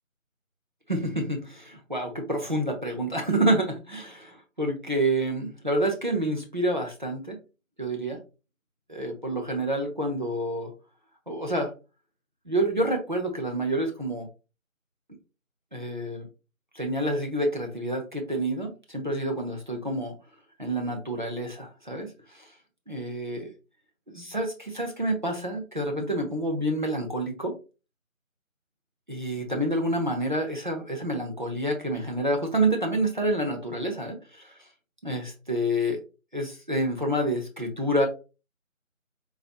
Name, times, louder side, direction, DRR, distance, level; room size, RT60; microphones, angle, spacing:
voice 1, 0.9-7.4 7.8-8.2 8.9-10.7 11.3-11.7 12.5-14.3 15.7-16.3 16.7-20.1 20.6-22.5 22.9-23.5 24.1-27.5 29.1-34.5 35.0-36.0 36.3-38.1, right 1 dB, 35° right, 1 dB, 0.9 m, -28 dB
4.0 x 3.0 x 3.0 m, 0.31 s
figure-of-eight pair, 175°, 41 cm